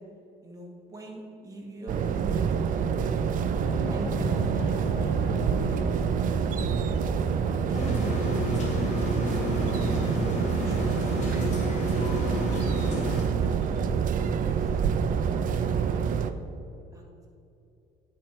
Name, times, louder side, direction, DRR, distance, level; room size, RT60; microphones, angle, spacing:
voice 1, 0.4-2.5 3.6-5.8 7.7-9.0 9.8-12.4 13.4-16.3 16.9-17.0, right 1 dB, 20° right, -1 dB, 1.6 m, -44 dB
sound 1, 1.9-16.3, right 7 dB, 50° right, 0.5 m, -27 dB
sound 2, 3.6-11.6, left 4 dB, 70° left, 0.8 m, -39 dB
sound 3, 7.7-13.2, left 1 dB, 45° left, 1.9 m, -31 dB
9.9 x 4.4 x 4.4 m, 2.7 s
cardioid pair, 110°, 17 cm